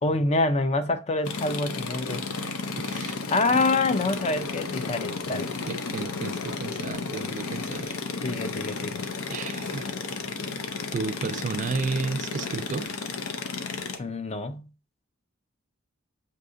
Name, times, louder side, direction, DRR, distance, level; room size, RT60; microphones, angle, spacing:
voice 1, 0.0-2.3 3.3-5.5 8.2-9.0 14.0-14.7, left 2 dB, 30° left, 0.4 m, -26 dB
sound 1, 1.2-14.0, left 4 dB, 80° left, 0.6 m, -33 dB
voice 2, 2.8-3.2 3.5-3.7 5.7-8.0 8.3-8.5 9.3-9.9 10.9-12.9, right 4 dB, 40° right, 0.3 m, -33 dB
6.5 x 2.8 x 2.5 m
head